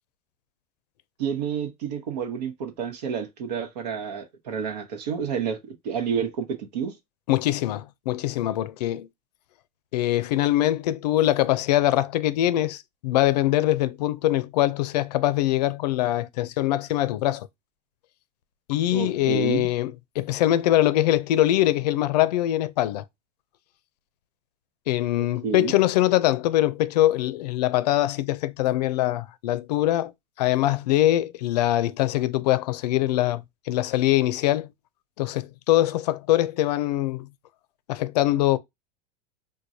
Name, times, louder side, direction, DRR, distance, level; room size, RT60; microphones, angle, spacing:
voice 1, 1.2-7.0 18.9-19.7 25.2-25.7, right 7 dB, 85° right, 1.0 m, -30 dB
voice 2, 7.3-9.1 9.9-17.5 18.7-23.0 24.9-30.1 30.4-34.7 35.2-37.3 37.9-38.6, left 14 dB, 85° left, 0.5 m, -23 dB
4.6 x 2.2 x 2.7 m
supercardioid pair, 125°, 20 cm